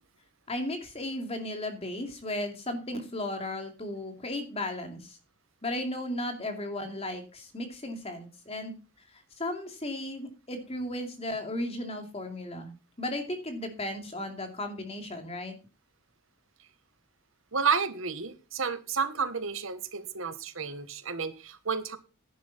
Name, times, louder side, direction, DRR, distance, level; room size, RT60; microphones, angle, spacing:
voice 1, 0.5-5.2 5.6-8.7 9.1-12.7 13.0-15.6, left 1 dB, 30° left, 5 dB, 2.6 m, -35 dB
voice 2, 17.5-22.0, right 5 dB, 70° right, 12 dB, 1.2 m, -31 dB
11.0 x 10.5 x 4.1 m, 0.33 s
head